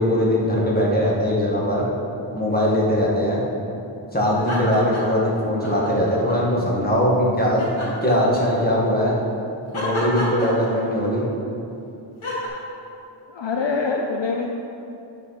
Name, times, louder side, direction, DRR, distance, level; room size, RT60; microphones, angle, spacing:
voice 1, 0.0-1.9 2.3-3.4 4.1-7.6 8.0-9.2 9.7-11.3, equal, 20° left, -5 dB, 1.9 m, -20 dB
sound 1, 4.3-5.2 5.6-6.6 7.6-8.7 9.7-11.1 12.2-12.5, left 1 dB, 80° left, 2.1 m, -30 dB
voice 2, 13.3-14.5, left 4 dB, 65° left, 1 dB, 0.7 m, -24 dB
12.0 x 4.6 x 4.3 m, 2.8 s
wide cardioid pair, 65°, 48 cm